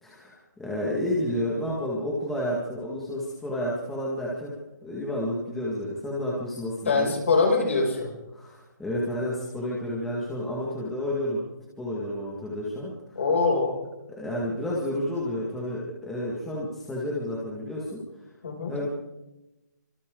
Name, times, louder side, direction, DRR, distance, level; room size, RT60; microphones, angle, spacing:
voice 1, 0.0-4.5 4.8-7.2 8.3-11.4 11.8-12.9 14.2-18.0 18.7-18.9, left 1 dB, 5° left, -6 dB, 2.0 m, -30 dB
voice 2, 6.9-8.1 13.2-13.8 18.4-18.7, left 3 dB, 45° left, 0 dB, 7.0 m, -23 dB
29.5 x 25.5 x 3.9 m, 1.0 s
hypercardioid pair, 180°, 10 cm